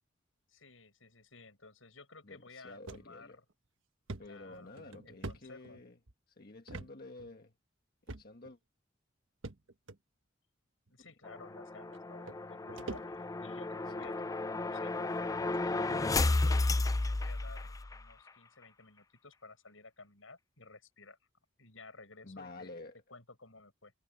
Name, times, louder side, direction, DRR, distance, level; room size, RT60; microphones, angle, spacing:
voice 1, 0.5-3.4 4.2-5.8 10.9-13.1 13.4-15.1 15.6-21.2 21.6-22.7 23.1-23.9, left 3 dB, 80° left, 7.3 m, -55 dB
voice 2, 2.2-3.4 4.2-6.0 6.3-7.5 8.1-8.6 11.0-11.1 13.7-14.3 16.0-16.4 22.2-23.0, left 2 dB, 50° left, 1.5 m, -51 dB
sound 1, 2.9-3.1 3.5-3.6 4.1-6.1 6.7-6.9 7.2-7.3 8.1-8.5 9.4-10.0 10.9-11.0 11.9-12.0 12.3-13.5 13.9-14.2 15.0-15.1 15.5-15.6 15.9-16.0 16.5-16.7, right 2 dB, 75° right, 1.4 m, -45 dB
sound 2, 11.3-18.0, left 2 dB, 15° left, 0.4 m, -33 dB
head